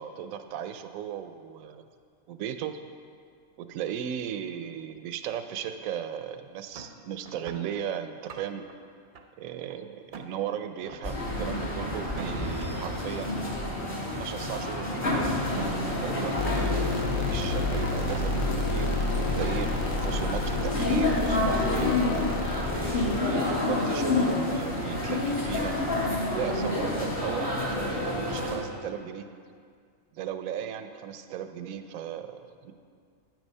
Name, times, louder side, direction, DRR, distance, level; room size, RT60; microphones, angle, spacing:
voice 1, 0.0-1.9 2.3-2.8 3.6-8.7 9.4-13.4 14.2-15.4 16.0-22.2 22.7-25.7 26.3-29.3 30.1-32.7, right 9 dB, 80° right, 9 dB, 1.0 m, -36 dB
sound 1, 6.7-7.6 8.1-8.7 9.1-9.7 10.1-10.3 10.8-11.0 12.0-12.6 13.7-13.8 14.8-15.8 16.2-16.3 17.0-17.4 17.9-18.2 18.8-18.9 19.1-19.6, right 5 dB, 50° right, 0.7 m, -42 dB
sound 2, 11.0-28.6, left 2 dB, 45° left, 1.8 m, -29 dB
sound 3, 16.4-23.2, left 3 dB, 60° left, 0.5 m, -31 dB
9.1 x 6.1 x 5.4 m, 2.1 s
omnidirectional pair, 1.4 m